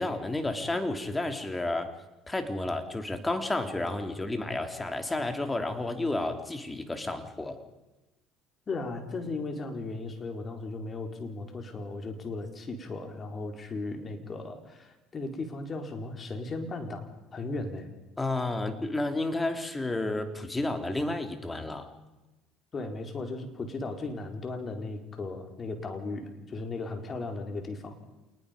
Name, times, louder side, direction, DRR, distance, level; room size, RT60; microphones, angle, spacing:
voice 1, 0.0-2.0 2.3-7.6 18.2-21.9, left 2 dB, 15° left, 6 dB, 3.3 m, -31 dB
voice 2, 8.7-17.9 22.7-27.9, left 3 dB, 35° left, 4 dB, 4.4 m, -36 dB
28.0 x 20.5 x 5.3 m, 1.0 s
hypercardioid pair, 70°, 0 cm